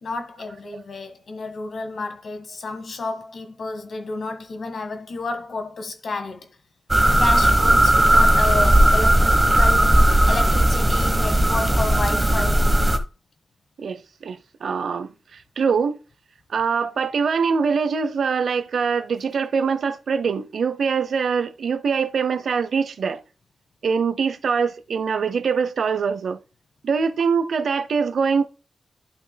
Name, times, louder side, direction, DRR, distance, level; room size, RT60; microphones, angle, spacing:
voice 1, 0.0-6.5 7.2-12.7, left 3 dB, 70° left, 1.6 m, -31 dB
sound 1, 6.9-13.0, right 1 dB, 15° right, 1.1 m, -17 dB
voice 2, 13.8-15.1 15.6-16.0 16.5-23.2 23.8-26.4 26.8-28.5, right 5 dB, 85° right, 0.7 m, -23 dB
11.5 x 5.8 x 2.2 m
wide cardioid pair, 125°, 0 cm